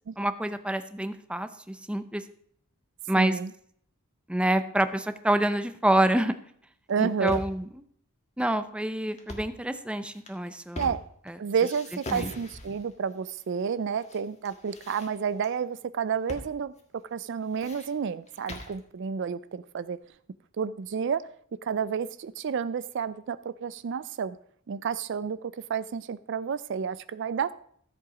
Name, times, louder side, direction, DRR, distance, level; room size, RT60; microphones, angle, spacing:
voice 1, 0.2-2.2 3.1-3.4 4.3-6.3 7.0-7.7 8.4-10.9 11.3-11.4 12.1-12.3, right 1 dB, 5° right, 0.6 m, -27 dB
voice 2, 3.2-3.5 6.9-7.4 10.8-11.0 11.4-16.7 17.1-20.0 20.6-21.2 21.6-24.4 24.7-27.5, right 6 dB, 55° right, 0.4 m, -30 dB
sound 1, 6.9-7.7 9.1-9.6 10.1-11.3 11.6-12.9 13.6-14.2 14.4-15.5 16.3-16.5 16.8-16.9 17.3-18.8, left 1 dB, 30° left, 1.7 m, -41 dB
14.0 x 7.7 x 4.9 m
head